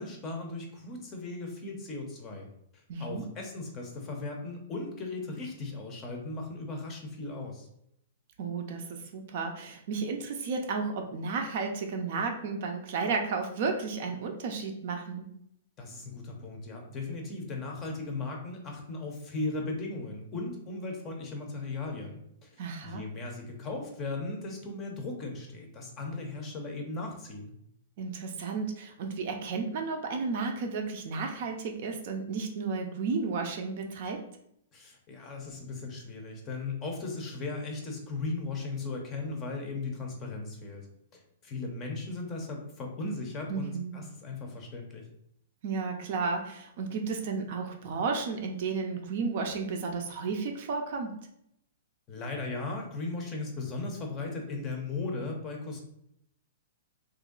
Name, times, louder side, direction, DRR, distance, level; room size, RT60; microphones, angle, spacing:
voice 1, 0.0-2.5 2.7-7.7 15.8-27.5 34.7-40.9 41.1-45.0 52.1-55.8, left 3 dB, 20° left, 1 dB, 0.6 m, -37 dB
voice 2, 2.9-3.3 8.4-15.3 22.6-23.0 28.0-34.2 43.5-44.0 45.6-51.2, right 4 dB, 45° right, 4 dB, 0.5 m, -33 dB
3.0 x 2.6 x 3.8 m, 0.75 s
hypercardioid pair, 165°, 0 cm